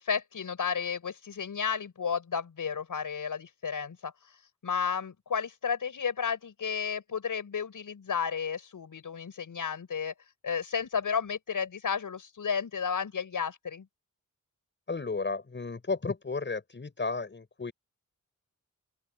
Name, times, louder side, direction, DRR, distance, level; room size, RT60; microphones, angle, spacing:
voice 1, 0.0-4.1 4.6-10.1 10.4-13.9, left 6 dB, 75° left, 6.8 m, -32 dB
voice 2, 14.9-17.7, left 4 dB, 35° left, 5.8 m, -33 dB
open air
wide cardioid pair, 165°, 32 cm